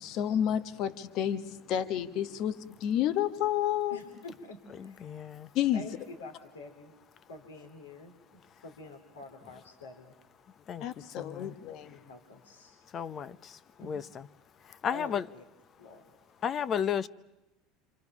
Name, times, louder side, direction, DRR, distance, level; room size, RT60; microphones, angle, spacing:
voice 1, 0.0-4.0 5.5-5.8 10.8-12.0, left 10 dB, 55° left, 1.3 m, -30 dB
voice 2, 3.9-5.1 5.7-6.9 7.3-10.1 11.8-12.8 13.8-13.9 14.9-15.4 15.8-16.2, left 2 dB, 90° left, 2.8 m, -48 dB
voice 3, 5.0-5.5 10.7-10.8 11.2-11.5 12.9-13.6 13.8-14.0 14.8-15.2 16.4-17.1, left 8 dB, 40° left, 0.8 m, -32 dB
27.0 x 26.5 x 6.1 m
hypercardioid pair, 80°, 0 cm